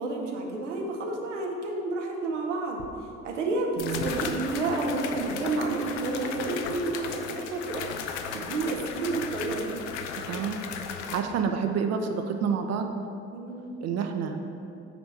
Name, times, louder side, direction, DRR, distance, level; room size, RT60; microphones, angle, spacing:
voice 1, 0.0-2.8 3.2-7.9 8.3-9.8 13.3-13.6, right 3 dB, 80° right, 1 dB, 0.8 m, -30 dB
sound 1, 2.8-2.9 3.8-11.2, left 6 dB, 75° left, 0.5 m, -36 dB
voice 2, 10.3-10.6 11.1-12.9 13.8-14.4, right 6 dB, 45° right, 5 dB, 0.6 m, -28 dB
8.2 x 3.4 x 4.2 m, 2.6 s
figure-of-eight pair, 50°, 36 cm